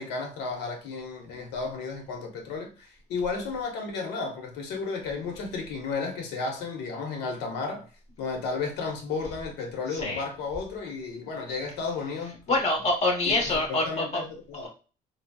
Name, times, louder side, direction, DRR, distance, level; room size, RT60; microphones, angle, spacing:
voice 1, 0.0-7.9 8.2-12.4 13.2-14.7, left 4 dB, 85° left, 0.9 m, -33 dB
voice 2, 9.9-10.2 12.5-14.2 14.5-14.7, left 2 dB, 40° left, 1.2 m, -26 dB
3.8 x 2.0 x 2.2 m
cardioid pair, 110°, 17 cm